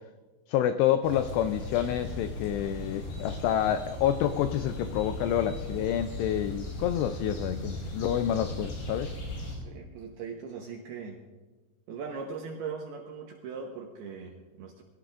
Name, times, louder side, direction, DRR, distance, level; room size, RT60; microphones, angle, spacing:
voice 1, 0.5-9.1, left 10 dB, 85° left, 10 dB, 2.4 m, -28 dB
sound 1, 1.0-9.6, left 1 dB, 70° left, 6.3 m, -38 dB
voice 2, 9.6-11.2 11.9-14.8, right 5 dB, 75° right, 1 dB, 2.6 m, -39 dB
23.5 x 17.5 x 2.5 m, 1.3 s
omnidirectional pair, 5.4 m